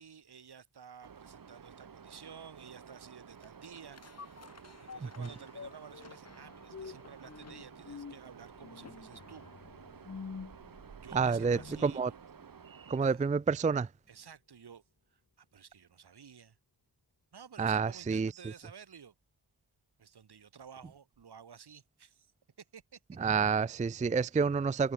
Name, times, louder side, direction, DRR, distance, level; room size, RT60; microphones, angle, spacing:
voice 1, 0.0-4.0 4.8-9.4 10.9-12.1 13.0-13.3 14.1-14.8 15.1-16.6 17.3-19.1 20.0-22.3 22.6-23.0, right 7 dB, 75° right, 3.6 m, -52 dB
sound 1, 1.0-13.0, right 6 dB, 55° right, 2.0 m, -53 dB
sound 2, 3.4-12.0 12.4-12.5, left 5 dB, 40° left, 1.7 m, -49 dB
voice 2, 11.1-12.1 12.9-13.9 17.6-18.3 23.2-24.9, right 5 dB, 20° right, 0.4 m, -28 dB
wide cardioid pair, 160°, 39 cm